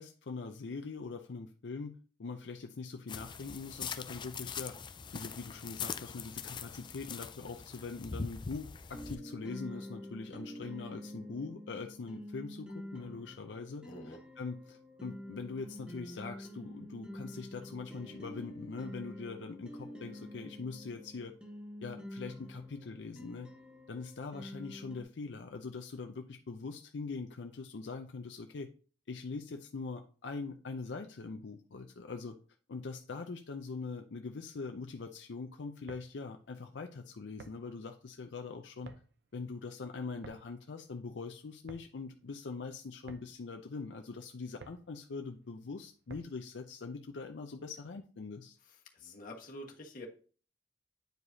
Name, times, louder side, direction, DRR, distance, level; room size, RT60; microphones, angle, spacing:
voice 1, 0.0-1.9 2.2-4.8 5.1-21.3 21.8-23.5 23.9-28.7 29.1-32.4 32.7-38.9 39.3-48.6, left 4 dB, 80° left, 4 dB, 0.5 m, -42 dB
sound 1, 3.1-9.1, left 6 dB, 25° left, 0.4 m, -42 dB
sound 2, 8.9-25.0, left 1 dB, 5° right, 1.0 m, -47 dB
voice 2, 13.8-14.2 48.9-50.1, left 1 dB, 50° left, 0 dB, 1.4 m, -47 dB
sound 3, 35.7-46.5, right 3 dB, 75° right, 0.7 m, -57 dB
9.1 x 4.9 x 2.7 m, 0.40 s
head